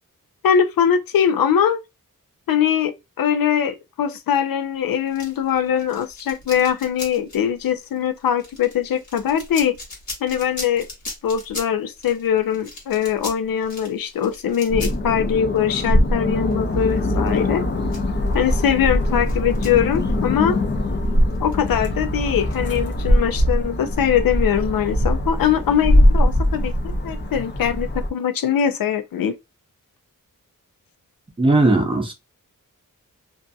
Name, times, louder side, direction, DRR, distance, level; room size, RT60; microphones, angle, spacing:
voice 1, 0.4-1.8 2.5-9.8 10.2-10.9 11.2-17.6 18.3-20.6 21.4-26.7 27.0-29.3, left 8 dB, 85° left, 0.5 m, -21 dB
sound 1, 5.1-20.5 20.7-20.9 21.3-23.2, left 2 dB, 60° left, 1.2 m, -39 dB
sound 2, 14.7-28.1, left 1 dB, 35° left, 0.5 m, -21 dB
voice 2, 31.4-32.1, right 2 dB, 15° right, 0.6 m, -17 dB
2.6 x 2.5 x 2.3 m
wide cardioid pair, 150°, 34 cm